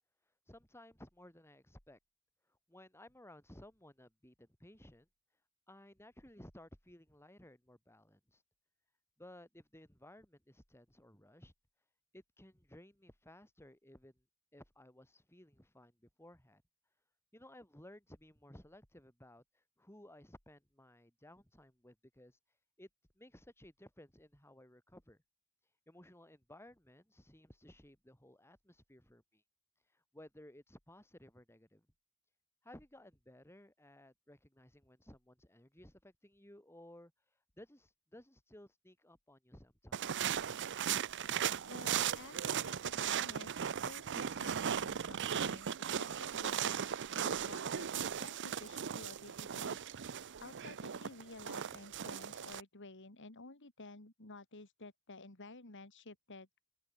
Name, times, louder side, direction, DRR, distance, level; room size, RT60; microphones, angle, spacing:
voice 1, 0.5-2.0 2.5-5.1 5.7-8.4 9.2-11.5 12.1-14.2 14.5-16.6 17.3-22.4 22.8-22.9 23.2-25.2 25.9-29.4 29.9-31.9 32.6-37.1 37.6-40.3, left 1 dB, 10° left, 7.8 m, -58 dB
sound 1, 39.9-52.6, right 8 dB, 55° right, 0.6 m, -37 dB
voice 2, 41.7-56.5, left 3 dB, 55° left, 2.6 m, -53 dB
open air
head